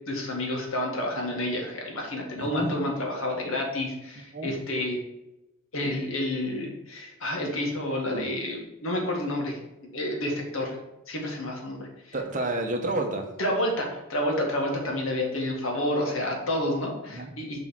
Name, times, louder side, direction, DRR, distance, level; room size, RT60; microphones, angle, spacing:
voice 1, 0.1-5.0 5.7-9.6 9.9-10.8 11.1-12.2 13.4-17.6, left 1 dB, 90° left, 0 dB, 1.9 m, -29 dB
voice 2, 2.3-2.7 4.3-4.5 8.1-8.3 12.1-13.3 17.1-17.3, right 2 dB, 40° right, 3 dB, 1.0 m, -30 dB
6.8 x 3.8 x 6.2 m, 0.94 s
head